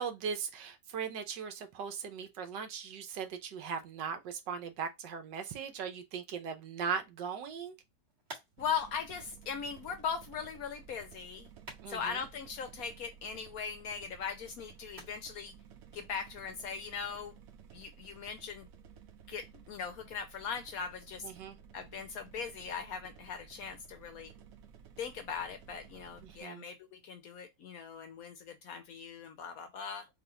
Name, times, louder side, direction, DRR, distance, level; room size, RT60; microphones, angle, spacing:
voice 1, 0.0-7.7 11.8-12.2 21.2-21.6 26.2-26.7, right 6 dB, 80° right, 1.5 m, -39 dB
sound 1, 7.4-17.1, right 1 dB, 35° right, 2.2 m, -57 dB
voice 2, 8.6-11.5 11.9-15.5 15.9-17.3 17.7-18.7 19.3-21.3 21.7-24.3 25.0-30.1, left 6 dB, 70° left, 0.9 m, -39 dB
sound 2, 8.6-26.4, right 7 dB, 65° right, 1.0 m, -55 dB
3.9 x 2.8 x 3.8 m
omnidirectional pair, 1.9 m